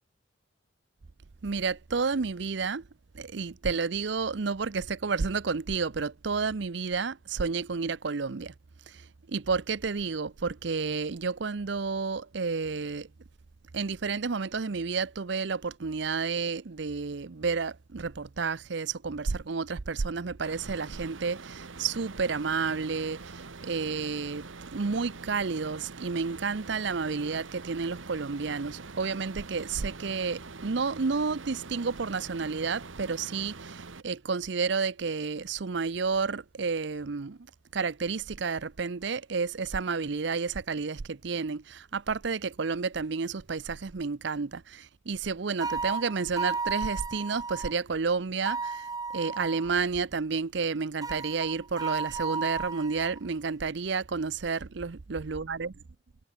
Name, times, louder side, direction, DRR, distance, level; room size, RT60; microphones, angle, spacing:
voice 1, 1.4-2.8 3.1-8.5 8.9-13.1 13.7-37.4 37.7-48.8 49.1-55.7, right 5 dB, 65° right, 0.6 m, -31 dB
sound 1, 20.5-34.0, right 3 dB, 80° right, 1.3 m, -44 dB
sound 2, 45.6-47.7 48.4-49.7 51.0-53.2, right 4 dB, 20° right, 0.8 m, -34 dB
head